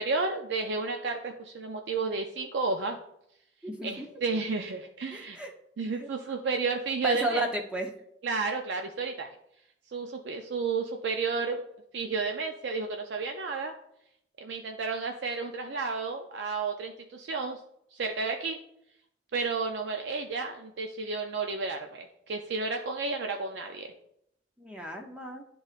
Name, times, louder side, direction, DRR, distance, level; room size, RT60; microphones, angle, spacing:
voice 1, 0.0-3.0 3.8-5.4 5.8-7.5 8.2-9.3 9.9-11.6 11.9-13.7 14.4-17.6 17.9-18.6 19.3-23.9, right 4 dB, 75° right, 4 dB, 0.5 m, -32 dB
voice 2, 3.6-4.1 5.1-5.5 6.0-6.1 7.0-7.9 24.6-25.4, right 1 dB, 5° right, 1 dB, 0.5 m, -33 dB
10.5 x 3.8 x 2.4 m, 0.75 s
head